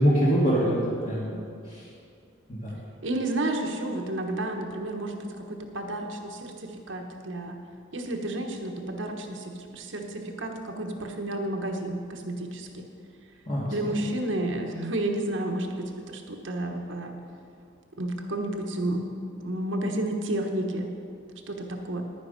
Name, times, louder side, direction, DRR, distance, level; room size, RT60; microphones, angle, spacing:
voice 1, 0.0-1.4 1.7-1.9 2.5-2.8 13.5-13.9, equal, 40° left, -9 dB, 1.9 m, -24 dB
voice 2, 3.0-7.6 7.9-12.9 13.7-17.2 18.0-19.1 19.4-20.9 21.5-22.0, right 1 dB, 75° right, 3 dB, 1.2 m, -31 dB
11.0 x 9.7 x 5.1 m, 2.4 s
head